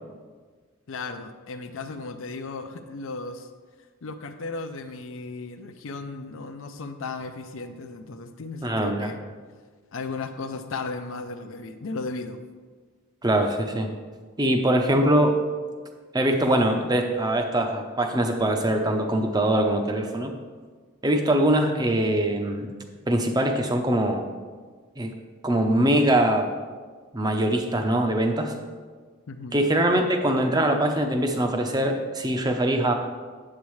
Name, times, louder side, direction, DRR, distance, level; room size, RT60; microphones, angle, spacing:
voice 1, 0.9-3.5 4.0-9.2 9.9-12.4 29.3-29.6, left 3 dB, 65° left, 8 dB, 0.5 m, -35 dB
voice 2, 8.6-9.1 13.2-13.9 14.4-15.4 16.1-20.3 21.0-22.7 23.1-24.3 25.0-25.1 25.4-26.5 27.1-28.5 29.5-32.9, right 1 dB, 20° right, 4 dB, 0.6 m, -22 dB
8.6 x 8.0 x 3.2 m, 1.5 s
head